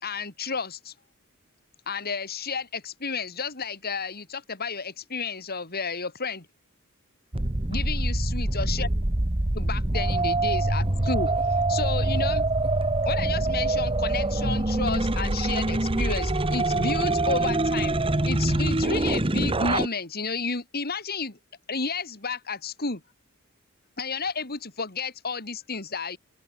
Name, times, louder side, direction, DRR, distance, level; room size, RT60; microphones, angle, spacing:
voice 1, 0.0-0.9 1.9-6.5 7.7-8.9 9.5-12.4 13.1-21.4 21.7-23.0 24.0-26.2, left 4 dB, 45° left, 3.5 m, -31 dB
sound 1, 7.3-19.9, right 2 dB, 25° right, 1.3 m, -25 dB
open air
head